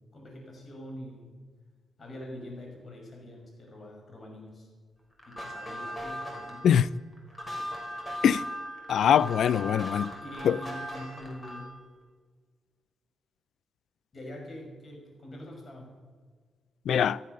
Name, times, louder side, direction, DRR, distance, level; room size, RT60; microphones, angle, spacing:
voice 1, 0.1-1.4 2.0-4.7 5.3-6.7 10.2-11.8 14.1-15.9, left 1 dB, 45° left, 5.9 m, -44 dB
sound 1, 5.2-11.8, equal, 25° left, 5.4 m, -38 dB
voice 2, 8.9-10.1 10.4-10.6 16.9-17.2, left 9 dB, 75° left, 0.4 m, -22 dB
14.0 x 12.0 x 6.6 m
cardioid pair, 65°, 0 cm